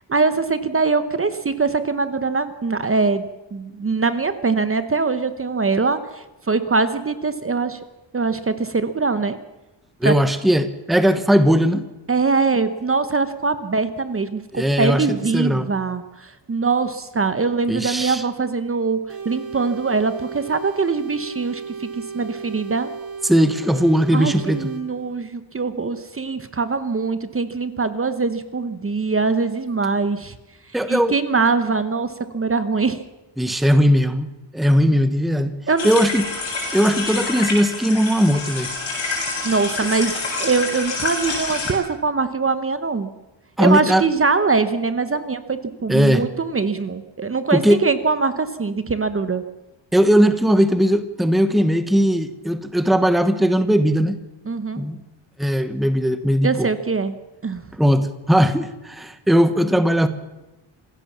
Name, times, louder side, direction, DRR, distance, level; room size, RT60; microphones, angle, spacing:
voice 1, 0.1-7.8 8.1-9.4 10.0-10.1 12.1-19.0 19.2-22.9 24.1-30.3 30.9-33.0 35.7-35.9 39.4-43.1 43.6-49.4 54.5-54.8 56.4-57.1 57.4-57.6, right 4 dB, 30° right, 11 dB, 0.9 m, -22 dB
voice 2, 10.0-11.8 14.5-15.7 17.7-18.2 23.2-24.7 30.7-31.2 33.4-34.3 34.5-35.6 35.8-36.3 36.7-38.7 43.6-44.0 45.9-46.3 47.5-47.8 49.9-54.2 54.8-55.0 55.4-56.7 57.8-60.1, equal, ahead, 11 dB, 1.0 m, -18 dB
sound 1, 19.1-24.8, right 5 dB, 50° right, 3.9 m, -34 dB
sound 2, 35.8-41.7, left 3 dB, 70° left, 7.7 m, -27 dB
26.5 x 16.0 x 7.3 m, 1.0 s
wide cardioid pair, 180°, 46 cm